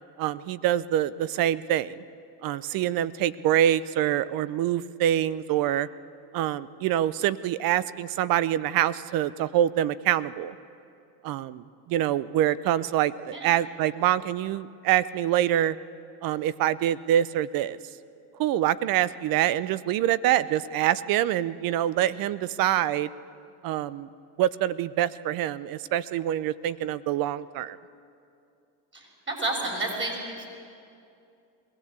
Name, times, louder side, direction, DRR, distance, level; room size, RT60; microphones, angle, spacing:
voice 1, 0.2-2.0 2.4-5.9 6.3-10.5 11.2-15.8 16.2-17.8 18.4-23.1 23.6-24.1 24.4-27.8, right 11 dB, 45° right, 17 dB, 0.7 m, -25 dB
voice 2, 28.9-30.4, right 2 dB, 25° right, 0 dB, 6.4 m, -31 dB
21.5 x 17.5 x 8.3 m, 2.5 s
supercardioid pair, 115°, 47 cm